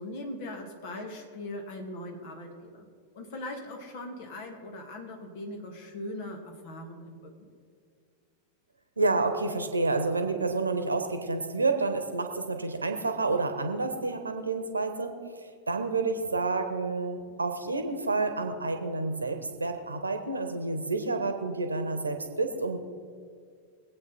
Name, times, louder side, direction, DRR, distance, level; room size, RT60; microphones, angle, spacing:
voice 1, 0.0-2.9 3.1-7.5, left 1 dB, 50° left, 3 dB, 2.4 m, -40 dB
voice 2, 9.0-15.1 15.7-22.8, right 3 dB, 80° right, 7 dB, 1.3 m, -29 dB
22.0 x 8.6 x 4.3 m, 2.2 s
figure-of-eight pair, 90°, 0 cm